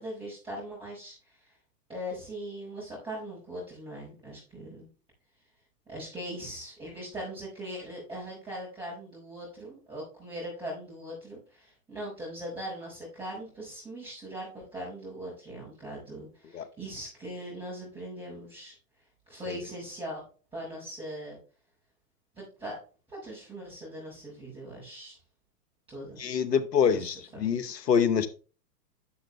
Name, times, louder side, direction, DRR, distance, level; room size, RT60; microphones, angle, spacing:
voice 1, 0.0-1.5 1.9-4.9 5.9-18.8 19.3-20.2 20.5-21.4 22.4-22.8 23.1-25.2 25.9-26.2 26.9-27.7, equal, 10° right, 5.1 m, -40 dB
voice 2, 26.2-28.3, left 7 dB, 90° left, 1.1 m, -26 dB
11.5 x 6.3 x 3.2 m
hypercardioid pair, 115°, 47 cm